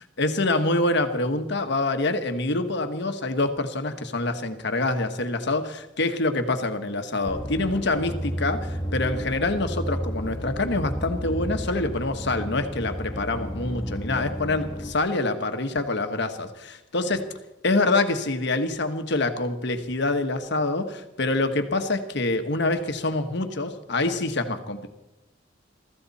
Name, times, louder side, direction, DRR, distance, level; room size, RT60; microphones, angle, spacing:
voice 1, 0.2-17.3 17.6-24.9, left 2 dB, 65° left, 7 dB, 1.5 m, -26 dB
sound 1, 7.2-14.9, equal, 20° left, 1.5 m, -32 dB
23.0 x 14.5 x 4.3 m, 0.92 s
head